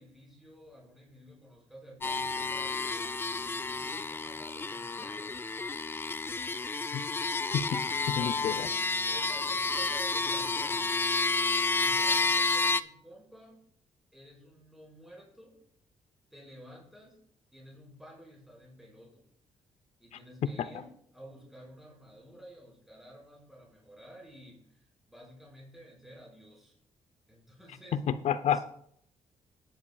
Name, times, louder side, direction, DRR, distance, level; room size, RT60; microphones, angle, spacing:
voice 1, 0.0-3.1 3.5-5.3 8.2-8.7 9.1-11.0 11.8-13.6 14.1-15.6 16.3-17.2 17.5-19.3 20.0-26.8 27.3-28.0 28.5-28.6, equal, ahead, -3 dB, 5.1 m, -52 dB
sound 1, 2.0-12.8, left 3 dB, 20° left, 0.4 m, -30 dB
voice 2, 7.5-8.7 20.1-20.2 20.6-20.7 27.9-28.6, left 8 dB, 65° left, 13 dB, 0.7 m, -30 dB
17.0 x 10.5 x 2.4 m, 0.67 s
cardioid pair, 100°, 12 cm